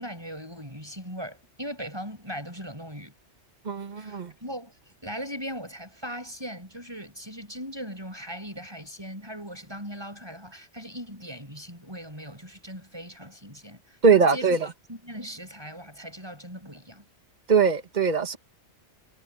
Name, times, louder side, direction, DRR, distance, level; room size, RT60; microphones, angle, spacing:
voice 1, 0.0-3.1 3.9-4.7 5.0-14.6 14.9-17.0, equal, 20° right, 7.6 m, -39 dB
voice 2, 3.6-4.3 14.0-14.7 17.5-18.4, right 5 dB, 40° right, 1.6 m, -21 dB
omnidirectional pair, 1.2 m